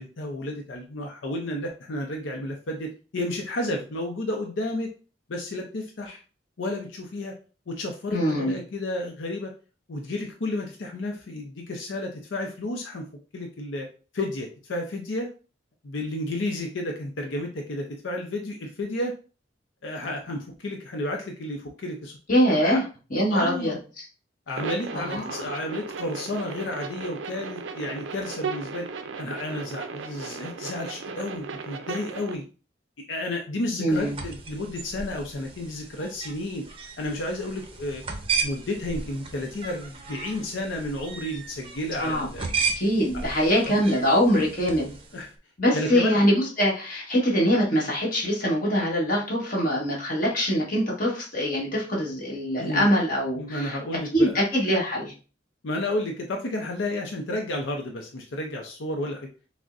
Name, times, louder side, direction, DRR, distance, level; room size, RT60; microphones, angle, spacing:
voice 1, 0.0-4.9 5.3-6.2 6.6-7.3 7.7-9.5 9.9-13.0 13.3-13.9 14.1-15.3 15.8-19.1 19.8-22.2 22.6-22.8 23.3-23.8 24.5-28.9 29.2-32.5 33.1-36.6 37.0-38.0 38.4-42.5 43.6-43.8 45.1-45.3 45.7-46.2 52.6-52.9 53.4-54.4 55.6-59.3, left 1 dB, 80° left, 2 dB, 0.6 m, -31 dB
voice 2, 8.1-8.6 22.3-22.8 23.1-23.8 24.9-25.5 33.8-34.1 42.0-42.3 42.7-44.9 45.6-53.8 54.1-55.1, equal, 50° left, -3 dB, 1.4 m, -23 dB
sound 1, 24.5-32.3, right 5 dB, 80° right, 0.4 m, -36 dB
sound 2, 33.9-45.2, right 5 dB, 30° right, 0.5 m, -35 dB
6.0 x 2.1 x 2.5 m, 0.36 s
head